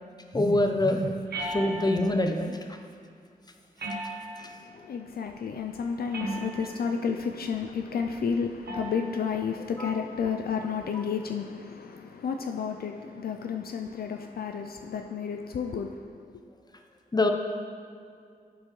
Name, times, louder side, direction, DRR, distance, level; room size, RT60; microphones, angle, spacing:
voice 1, 0.3-2.8 9.8-9.9 17.1-17.3, left 1 dB, 25° left, 4 dB, 0.8 m, -25 dB
sound 1, 1.3-2.2 3.8-4.6 6.1-6.8 8.7-9.1, right 2 dB, 80° right, 1.0 m, -35 dB
voice 2, 4.4-16.2, left 6 dB, 70° left, 4 dB, 0.4 m, -32 dB
12.0 x 4.4 x 3.1 m, 2.3 s
cardioid pair, 50°, 16 cm